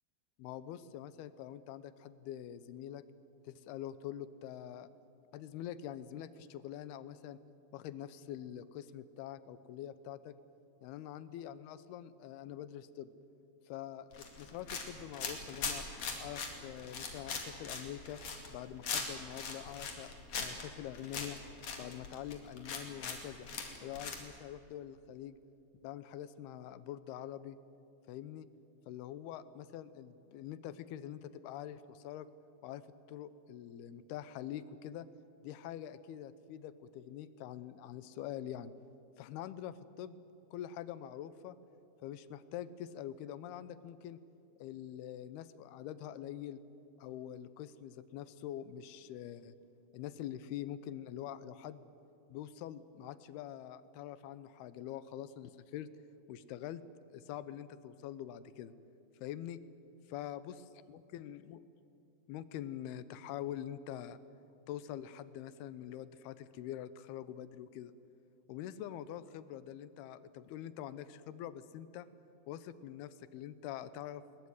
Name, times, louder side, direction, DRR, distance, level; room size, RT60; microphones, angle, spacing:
voice 1, 0.4-3.0 3.4-4.9 5.3-7.4 7.7-10.3 10.8-13.1 13.7-15.9 16.2-18.2 18.5-21.4 21.8-23.5 23.8-25.4 25.8-27.6 28.1-28.5 28.9-32.3 32.6-32.8 33.1-35.1 35.4-38.7 39.2-40.2 40.5-41.6 42.0-44.2 44.6-46.6 47.0-49.6 49.9-51.8 52.3-55.9 56.3-56.8 57.1-58.7 59.2-59.6 60.1-60.6 60.9-61.6 62.3-64.2 64.7-67.9 68.5-72.1 72.5-74.2, left 11 dB, 80° left, 15 dB, 2.7 m, -45 dB
sound 1, 14.1-24.2, left 5 dB, 45° left, 3.4 m, -40 dB
21.5 x 21.0 x 9.6 m, 2.7 s
omnidirectional pair, 4.5 m